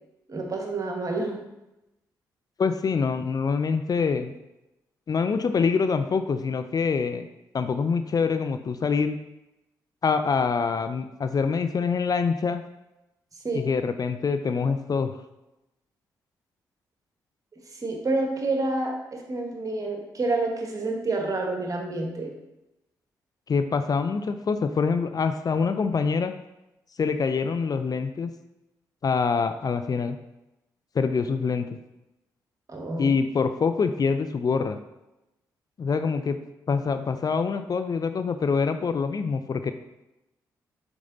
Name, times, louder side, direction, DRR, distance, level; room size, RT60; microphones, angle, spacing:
voice 1, 0.3-1.4 13.4-13.7 17.7-22.3 32.7-33.1, right 2 dB, 40° right, 1 dB, 1.6 m, -28 dB
voice 2, 2.6-4.3 5.1-7.3 7.5-9.2 10.0-12.6 13.5-15.1 23.5-26.3 27.0-28.3 29.0-30.2 30.9-31.8 33.0-34.8 35.8-36.4 36.7-39.7, left 5 dB, 45° left, 9 dB, 0.5 m, -25 dB
5.3 x 4.7 x 3.9 m, 0.95 s
hypercardioid pair, 45°, 9 cm